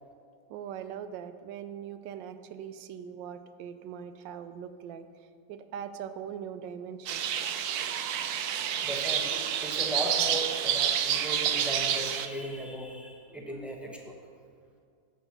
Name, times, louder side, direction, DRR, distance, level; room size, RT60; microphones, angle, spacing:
voice 1, 0.5-5.0 5.5-7.2, right 8 dB, 90° right, 10 dB, 1.3 m, -41 dB
sound 1, 7.1-12.3, right 9 dB, 70° right, 1.0 m, -29 dB
voice 2, 8.8-14.1, equal, ahead, -1 dB, 0.7 m, -37 dB
7.6 x 7.0 x 6.8 m, 2.2 s
omnidirectional pair, 1.9 m